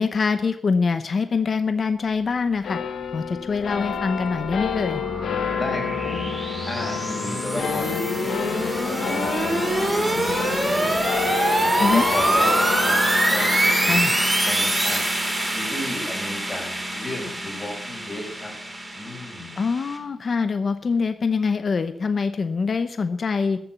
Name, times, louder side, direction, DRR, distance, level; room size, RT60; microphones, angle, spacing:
voice 1, 0.0-2.8 3.1-5.0 11.8-12.1 13.8-14.1 19.6-23.6, left 5 dB, 45° left, 10 dB, 0.8 m, -24 dB
sound 1, 2.6-19.4, left 7 dB, 90° left, 1.2 m, -30 dB
sound 2, 3.9-20.0, right 1 dB, 20° right, 3.0 m, -25 dB
voice 2, 5.5-6.4 6.7-18.5 18.9-19.6, left 2 dB, 20° left, -1 dB, 5.5 m, -34 dB
14.0 x 7.2 x 8.3 m, 0.69 s
wide cardioid pair, 130°, 0 cm